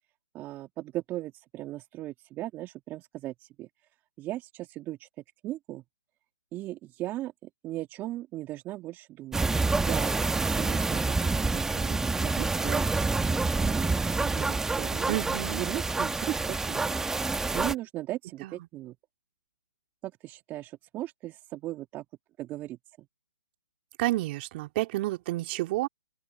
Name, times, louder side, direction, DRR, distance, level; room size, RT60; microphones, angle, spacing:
voice 1, 0.3-3.7 4.2-5.1 5.4-5.8 6.5-9.4 9.8-10.2 10.5-12.9 13.5-15.2 15.5-16.9 17.5-19.0 20.0-22.1 22.4-23.1, right 15 dB, 20° right, 1.9 m, -37 dB
sound 1, 9.3-17.7, right 3 dB, 5° right, 1.2 m, -27 dB
voice 2, 15.1-15.6 18.4-18.6 24.0-25.9, right 17 dB, 35° right, 2.8 m, -30 dB
open air
hypercardioid pair, 145°, 10 cm